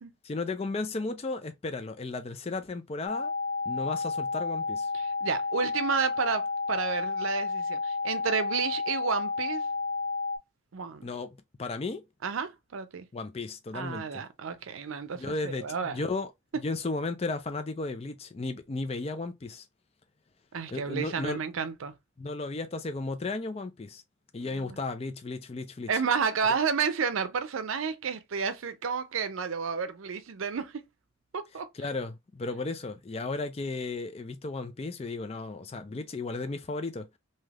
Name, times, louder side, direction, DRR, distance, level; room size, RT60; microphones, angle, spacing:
voice 1, 0.2-3.3 3.7-4.9 11.0-12.0 13.1-14.2 15.1-16.3 16.6-19.7 20.7-21.4 22.2-24.0 24.3-25.9 31.7-37.1, left 3 dB, 30° left, 0.4 m, -34 dB
sound 1, 3.1-10.4, left 4 dB, 20° right, 0.6 m, -31 dB
voice 2, 4.9-9.6 10.7-11.0 12.2-13.1 13.7-16.0 20.5-21.9 24.4-24.8 25.9-30.8 31.3-31.7, right 6 dB, 85° right, 0.5 m, -31 dB
3.3 x 2.8 x 2.3 m
head